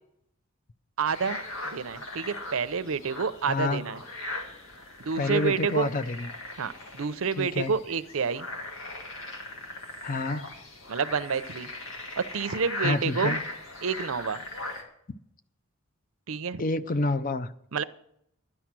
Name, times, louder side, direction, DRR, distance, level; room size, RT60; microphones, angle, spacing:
voice 1, 1.0-1.4 1.7-4.0 5.0-5.9 6.6-8.5 10.9-11.7 12.2-13.4 13.8-14.4 16.3-16.6 17.7-17.8, right 5 dB, 70° right, 14 dB, 0.6 m, -29 dB
sound 1, 1.1-14.8, left 2 dB, 65° left, 2.1 m, -39 dB
voice 2, 3.5-3.8 5.2-6.3 7.4-7.7 10.0-10.5 12.8-13.4 16.6-17.5, left 2 dB, 40° left, 13 dB, 0.5 m, -28 dB
11.5 x 10.0 x 6.0 m, 0.74 s
head